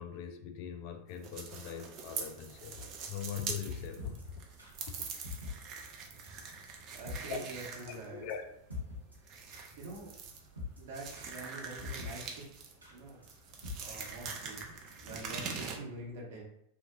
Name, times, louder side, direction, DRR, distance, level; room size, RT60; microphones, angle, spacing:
voice 1, 0.0-4.3 4.9-5.0 7.3-7.4 7.9-8.4, left 8 dB, 45° left, 6 dB, 0.3 m, -41 dB
sound 1, 1.1-15.8, right 5 dB, 35° right, 0.5 m, -44 dB
sound 2, 3.1-5.5 5.8-5.9 6.2-6.3 6.6-6.7 7.0-7.2 7.5-7.6 7.9-8.0 8.3-8.4 8.7-9.2 9.5-9.6 9.9-10.0 10.3-10.8 11.2-11.3 11.6-12.1 12.4-12.5 12.8-13.0 13.2-13.3 13.6-13.7 14.0-14.1 14.4-14.6 14.9-15.0 15.3-15.4, left 5 dB, 85° right, 0.7 m, -44 dB
voice 2, 6.9-8.2 9.8-10.1 10.8-12.5 12.9-13.2 13.8-16.4, right 2 dB, 55° right, -2 dB, 0.9 m, -46 dB
2.8 x 2.1 x 2.5 m, 0.76 s
figure-of-eight pair, 90°, 0 cm